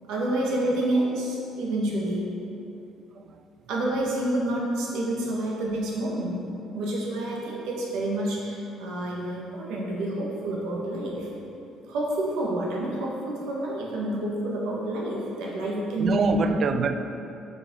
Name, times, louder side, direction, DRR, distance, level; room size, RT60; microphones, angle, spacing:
voice 1, 0.1-2.3 3.7-11.3 11.9-16.4, right 1 dB, 80° right, 1.3 m, -28 dB
voice 2, 1.8-2.2 3.1-3.5 10.7-11.0 16.0-17.0, right 6 dB, 35° right, 0.3 m, -28 dB
7.3 x 5.2 x 3.7 m
cardioid pair, 165°, 0 cm